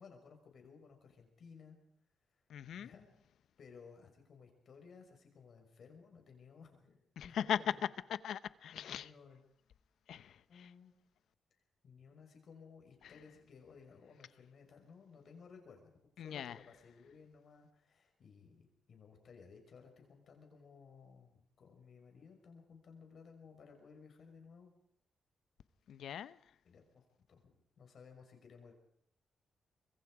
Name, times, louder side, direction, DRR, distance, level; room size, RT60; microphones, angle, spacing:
voice 1, 0.0-1.8 2.7-3.1 3.6-7.6 8.7-9.4 10.5-11.0 11.8-15.9 16.2-18.6 18.9-24.7 25.9-26.0 26.6-28.8, left 5 dB, 50° left, 6.0 m, -58 dB
voice 2, 2.5-2.9 7.2-7.7 8.1-9.1 10.1-10.7 13.0-13.1 16.2-16.6 25.9-26.5, left 9 dB, 80° left, 0.8 m, -39 dB
25.5 x 22.5 x 5.0 m
wide cardioid pair, 160°, 0 cm